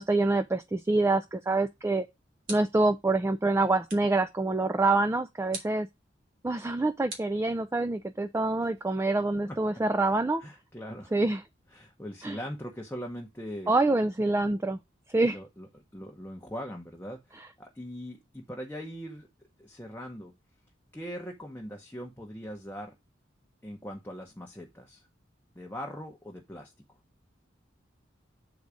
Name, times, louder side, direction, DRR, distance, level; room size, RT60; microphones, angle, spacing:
voice 1, 0.0-2.0 2.5-5.9 6.4-10.4 11.1-11.4 12.2-12.4 13.7-14.8 15.1-15.4, right 2 dB, 15° right, 0.3 m, -26 dB
sound 1, 1.8-3.0 3.9-4.2 5.5-5.9 7.1-8.0, right 3 dB, 50° right, 3.1 m, -43 dB
voice 2, 10.4-11.2 11.7-13.7 15.3-19.3 19.6-20.3 20.9-22.9 23.6-25.1 25.5-26.7, equal, 10° left, 0.8 m, -41 dB
8.3 x 4.0 x 4.8 m
head